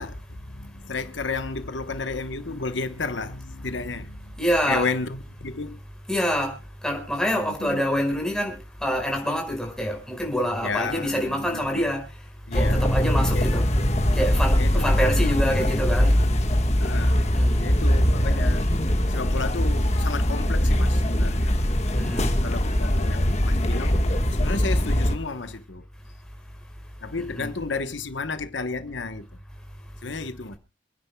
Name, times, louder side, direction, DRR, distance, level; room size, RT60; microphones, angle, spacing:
voice 1, 0.0-4.4 4.7-5.8 7.3-7.8 10.6-11.8 12.5-12.8 13.3-13.4 14.6-14.9 16.8-17.2 17.6-18.7 19.1-21.6 22.4-25.9 27.0-29.3 30.0-30.5, left 4 dB, 80° left, 1.1 m, -32 dB
voice 2, 4.4-4.9 6.1-6.6 6.8-13.6 14.1-16.2 17.3-17.7 21.9-22.4 27.3-27.5, equal, 5° left, 5.1 m, -26 dB
sound 1, 12.5-25.1, equal, 35° left, 1.5 m, -22 dB
28.0 x 9.9 x 2.3 m
head